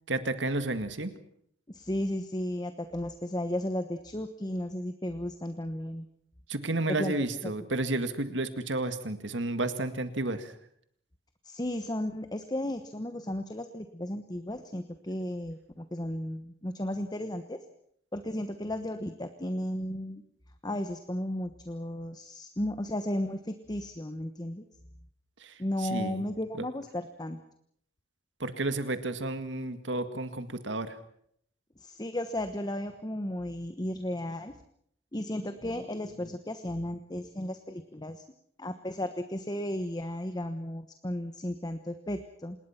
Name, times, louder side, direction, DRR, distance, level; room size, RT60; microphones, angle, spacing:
voice 1, 0.1-1.1 6.5-10.5 25.4-26.2 28.4-31.0, right 2 dB, 75° right, 10 dB, 2.0 m, -32 dB
voice 2, 1.7-6.1 6.9-7.1 7.4-7.5 11.4-17.6 18.1-20.2 20.6-24.6 25.6-27.4 31.8-34.5 35.1-38.2 38.6-42.6, left 1 dB, 20° left, 9 dB, 1.2 m, -34 dB
27.0 x 20.5 x 5.8 m, 0.67 s
head